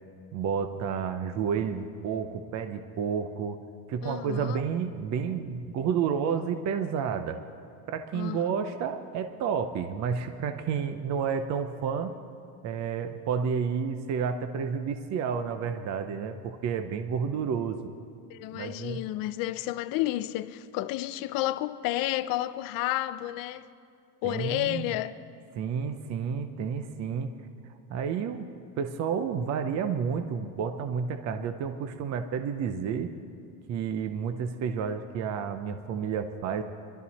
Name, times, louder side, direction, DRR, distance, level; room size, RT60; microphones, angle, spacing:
voice 1, 0.3-3.6 3.9-7.4 7.9-12.2 12.6-17.9 18.5-19.0 24.2-24.9 25.6-27.3 27.6-33.1 33.7-36.6, right 6 dB, 35° right, 0.7 m, -30 dB
voice 2, 4.0-4.6 8.1-8.6 18.3-23.7 24.2-25.2, left 15 dB, 45° left, 0.6 m, -31 dB
23.0 x 12.5 x 4.2 m
cardioid pair, 150°, 46 cm